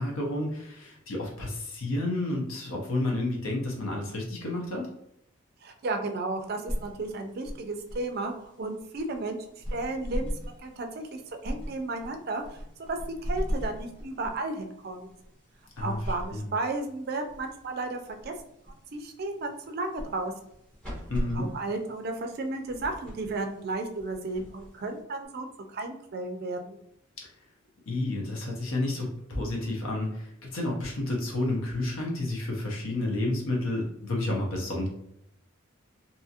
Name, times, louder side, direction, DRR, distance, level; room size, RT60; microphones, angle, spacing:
voice 1, 0.0-4.9 15.8-16.0 16.3-16.5 21.1-21.5 27.9-34.9, left 2 dB, 90° left, -1 dB, 0.7 m, -30 dB
voice 2, 5.6-8.3 8.6-9.4 9.7-12.6 12.9-15.1 15.8-18.3 18.9-20.3 21.3-26.8, right 2 dB, 50° right, 5 dB, 0.4 m, -33 dB
sound 1, 6.4-25.2, equal, 5° left, 1.1 m, -39 dB
2.7 x 2.4 x 2.7 m, 0.75 s
head